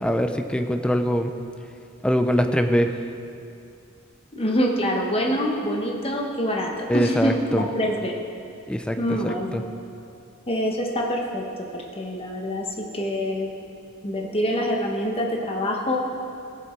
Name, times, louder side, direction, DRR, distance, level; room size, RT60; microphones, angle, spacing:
voice 1, 0.0-1.3 2.0-2.9 6.9-7.6 8.7-9.6, equal, 5° left, 7 dB, 0.4 m, -23 dB
voice 2, 4.3-8.2 9.0-9.6 10.5-13.5 14.0-16.0, equal, 25° left, 0 dB, 1.2 m, -25 dB
16.0 x 7.4 x 4.5 m, 2.5 s
head